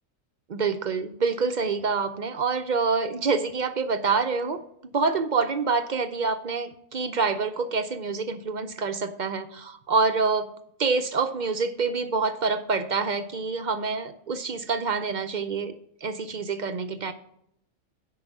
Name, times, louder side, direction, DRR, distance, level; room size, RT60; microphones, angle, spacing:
voice 1, 0.5-10.5 10.8-15.7 16.0-17.1, right 4 dB, 50° right, 9 dB, 0.6 m, -26 dB
10.5 x 4.8 x 7.2 m, 0.73 s
omnidirectional pair, 1.4 m